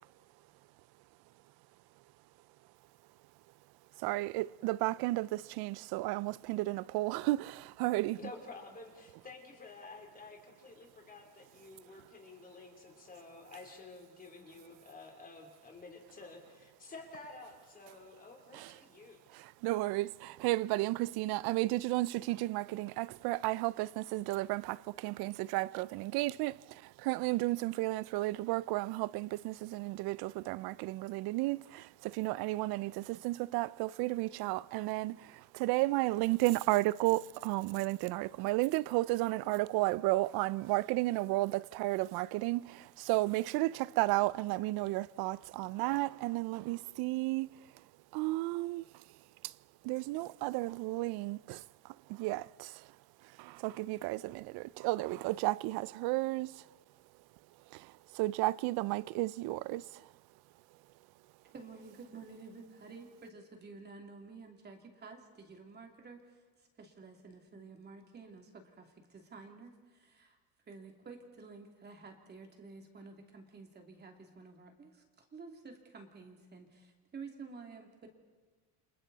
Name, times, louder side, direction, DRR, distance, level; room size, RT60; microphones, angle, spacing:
voice 1, 4.0-8.2 18.5-18.7 19.3-47.5 48.1-48.9 49.4-49.5 49.8-52.9 53.4-56.6 57.7-60.1, right 19 dB, 75° right, 0.6 m, -33 dB
voice 2, 8.2-19.2, left 3 dB, 25° left, 3.4 m, -51 dB
voice 3, 61.5-66.4 66.8-70.4 70.7-78.1, right 4 dB, 25° right, 2.8 m, -51 dB
29.5 x 27.0 x 4.1 m
cardioid pair, 155°, 37 cm